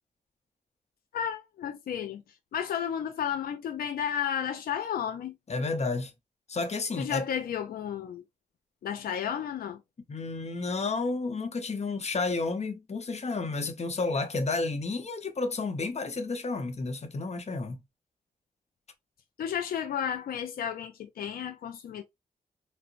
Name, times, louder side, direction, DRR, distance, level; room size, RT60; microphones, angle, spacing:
voice 1, 1.1-2.2 2.5-5.3 7.0-8.2 8.8-9.8 19.4-22.0, left 8 dB, 90° left, 0.4 m, -32 dB
voice 2, 5.5-6.1 6.5-7.2 10.1-17.8, left 3 dB, 45° left, 0.7 m, -31 dB
3.8 x 2.1 x 2.5 m
cardioid pair, 65°, 15 cm